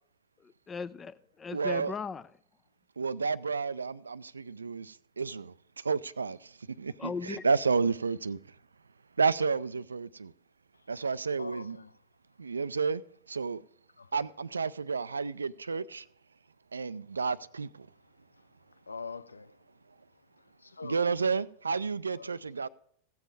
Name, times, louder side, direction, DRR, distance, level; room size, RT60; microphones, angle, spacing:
voice 1, 0.4-2.2 7.0-7.5, left 5 dB, 20° left, 0.5 m, -38 dB
voice 2, 1.5-1.9 3.0-5.5 5.8-8.4 9.2-10.3 10.9-11.8 12.4-13.0 13.3-13.6 14.1-16.0 16.7-17.9 20.8-22.7, right 5 dB, 75° right, 0.4 m, -31 dB
voice 3, 11.4-12.0 14.0-14.2 15.6-15.7 17.9-18.0 18.3-19.7 20.3-21.1 22.1-22.4, left 4 dB, 80° left, 0.4 m, -45 dB
16.0 x 7.1 x 4.7 m
figure-of-eight pair, 90°, 0 cm